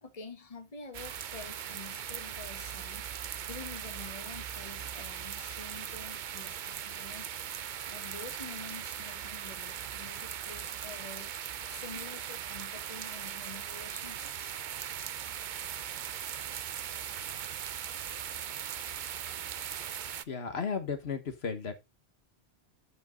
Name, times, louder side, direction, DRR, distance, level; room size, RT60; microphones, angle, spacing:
voice 1, 0.0-7.3 7.9-11.3 11.7-14.6, left 4 dB, 35° left, 1.4 m, -48 dB
sound 1, 0.9-20.2, right 9 dB, 55° right, 0.6 m, -39 dB
voice 2, 20.3-21.7, left 6 dB, 70° left, 1.5 m, -34 dB
10.5 x 5.3 x 3.8 m
omnidirectional pair, 1.1 m